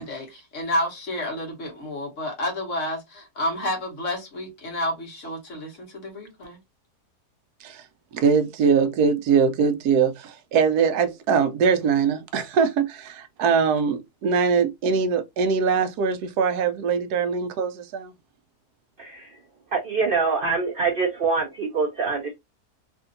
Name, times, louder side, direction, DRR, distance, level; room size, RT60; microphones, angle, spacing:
voice 1, 0.0-6.6, left 1 dB, 50° left, 1.5 m, -30 dB
voice 2, 8.1-18.1, right 6 dB, 80° right, 1.1 m, -22 dB
voice 3, 19.0-19.4 19.7-22.3, right 4 dB, 55° right, 0.6 m, -24 dB
3.4 x 2.6 x 2.5 m
omnidirectional pair, 1.7 m